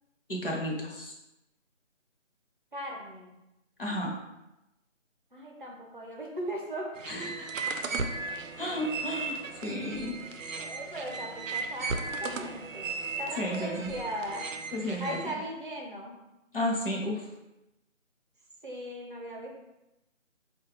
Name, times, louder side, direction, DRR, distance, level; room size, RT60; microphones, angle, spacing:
voice 1, 0.3-1.1 3.8-4.1 7.1-7.7 8.6-10.2 13.4-13.9 14.7-15.3 16.5-17.2, left 1 dB, 45° left, -2 dB, 0.8 m, -33 dB
voice 2, 2.7-3.3 5.3-6.9 10.5-11.9 12.2-12.9 13.2-14.5 15.0-16.2 18.6-19.5, right 1 dB, 40° right, -1 dB, 0.7 m, -38 dB
sound 1, 7.0-15.3, right 4 dB, 85° right, 0.5 m, -36 dB
4.1 x 2.3 x 3.1 m, 0.93 s
figure-of-eight pair, 170°, 38 cm